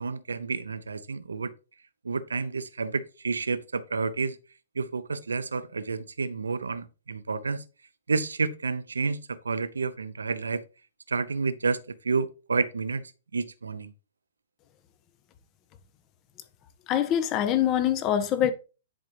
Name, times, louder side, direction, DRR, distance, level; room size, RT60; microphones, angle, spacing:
voice 1, 0.0-1.5 2.0-4.4 4.7-7.6 8.1-10.6 11.1-13.9, right 4 dB, 75° right, 0.8 m, -30 dB
voice 2, 16.9-18.5, left 10 dB, 30° left, 1.1 m, -24 dB
10.0 x 5.1 x 3.1 m
figure-of-eight pair, 115°, 0 cm